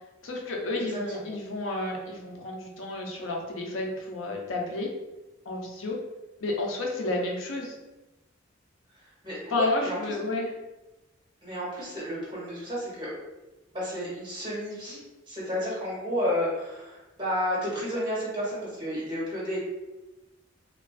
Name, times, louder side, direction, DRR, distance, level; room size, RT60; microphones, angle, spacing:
voice 1, 0.2-4.9 5.5-6.0 6.4-7.8 9.5-10.5, left 2 dB, 85° left, 0 dB, 0.5 m, -31 dB
voice 2, 0.7-1.3 8.9-10.1 11.4-13.1 13.7-15.0 15.3-19.6, equal, 25° right, -8 dB, 1.1 m, -32 dB
2.4 x 2.2 x 2.3 m, 1.0 s
head